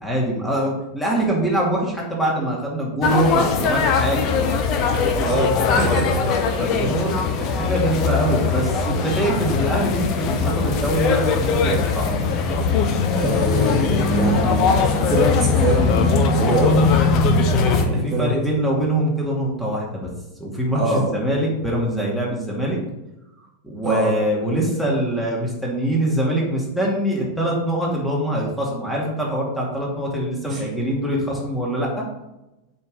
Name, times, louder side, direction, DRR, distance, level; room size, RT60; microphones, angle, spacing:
voice 1, 0.0-4.2 6.6-12.2 17.7-20.1 20.4-22.8 23.6-32.0, right 1 dB, 5° left, -3 dB, 2.4 m, -23 dB
sound 1, 3.0-17.8, left 4 dB, 40° left, 1.0 m, -20 dB
voice 2, 5.2-6.4 13.1-16.8 17.7-18.6 20.8-21.1 23.8-24.2 30.4-30.7, right 2 dB, 25° right, -2 dB, 2.0 m, -24 dB
8.2 x 4.5 x 5.5 m, 0.94 s
figure-of-eight pair, 90°, 0 cm